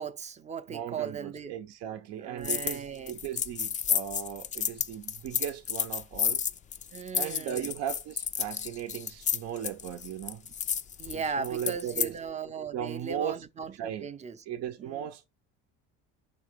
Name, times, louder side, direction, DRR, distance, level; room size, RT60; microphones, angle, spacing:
voice 1, 0.0-1.6 2.2-3.2 6.9-7.7 11.0-14.4 14.8-15.1, right 6 dB, 25° right, 0.6 m, -37 dB
voice 2, 0.7-6.4 7.1-10.4 11.1-12.2 12.7-13.4 13.7-14.1 14.5-15.3, right 10 dB, 60° right, 0.7 m, -37 dB
sound 1, 2.4-2.8 3.1-12.1, left 8 dB, 25° left, 0.4 m, -31 dB
5.7 x 4.0 x 5.0 m
cardioid pair, 125°, 30 cm